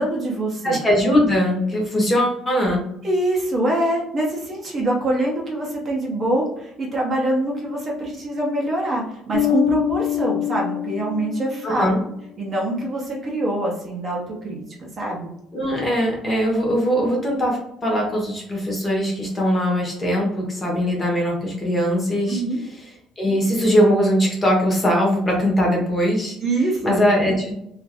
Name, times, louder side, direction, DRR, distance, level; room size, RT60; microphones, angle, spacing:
voice 1, 0.0-0.8 3.0-11.9 12.4-15.3 22.3-22.6 26.4-27.0, right 1 dB, 25° right, -2 dB, 0.6 m, -24 dB
voice 2, 0.6-2.8 11.6-12.0 15.5-22.4 23.2-26.4 26.8-27.5, equal, 15° left, -1 dB, 0.7 m, -20 dB
Bass guitar, 9.3-12.0, left 12 dB, 90° left, 0.4 m, -24 dB
2.5 x 2.4 x 3.3 m, 0.77 s
cardioid pair, 175°, 0 cm